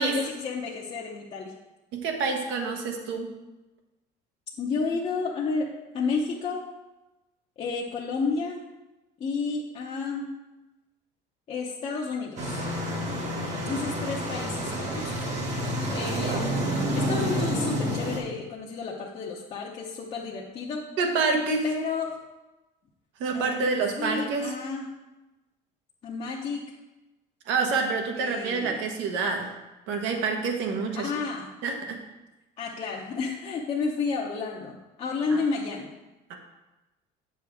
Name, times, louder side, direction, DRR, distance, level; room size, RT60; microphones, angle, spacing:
voice 1, 0.0-1.6 4.6-6.6 7.6-8.6 9.2-10.3 11.5-12.6 13.7-15.4 15.9-16.6 16.9-20.8 21.6-22.2 23.3-24.9 26.0-26.6 28.1-28.8 30.9-31.5 32.6-35.9, left 4 dB, 30° left, -4 dB, 0.8 m, -31 dB
voice 2, 1.9-3.3 21.0-21.7 23.2-24.5 27.5-29.5 29.9-31.1 31.6-32.0 35.3-35.4 36.3-36.4, right 4 dB, 80° right, 3 dB, 1.2 m, -27 dB
sound 1, 12.4-18.2, equal, 35° right, 1.4 m, -29 dB
8.3 x 6.3 x 3.5 m, 1.1 s
cardioid pair, 165°, 19 cm